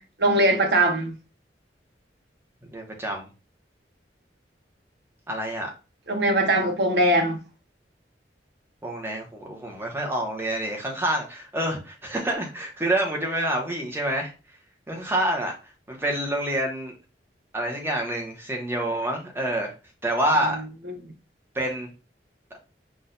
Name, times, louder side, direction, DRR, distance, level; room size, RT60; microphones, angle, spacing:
voice 1, 0.2-1.1 6.1-7.4 20.9-21.0, right 1 dB, 70° right, 1.0 m, -21 dB
voice 2, 2.7-3.3 5.3-5.7 8.8-14.3 14.9-15.5 15.9-17.0 17.5-19.7 20.0-20.6 21.5-21.9, right 1 dB, 15° right, 1.0 m, -27 dB
6.1 x 2.5 x 2.6 m
head